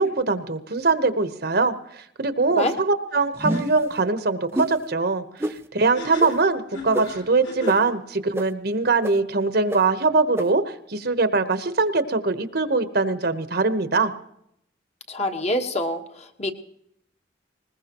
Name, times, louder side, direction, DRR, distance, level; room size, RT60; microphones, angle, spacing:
voice 1, 0.0-14.1, right 3 dB, 55° right, 10 dB, 1.1 m, -22 dB
sound 1, 3.1-3.2 3.5-3.6 5.8-7.9, left 1 dB, 80° left, 6.0 m, -37 dB
sound 2, 3.4-3.8 4.5-4.7 5.4-5.5 6.2-6.3 6.9-7.0 7.7-7.8 8.4-8.5 9.0-9.1 9.7-9.8 10.4-10.5, right 1 dB, 15° right, 0.6 m, -26 dB
voice 2, 15.1-16.5, left 1 dB, 35° left, 5 dB, 1.4 m, -26 dB
20.5 x 20.5 x 3.0 m, 0.73 s
head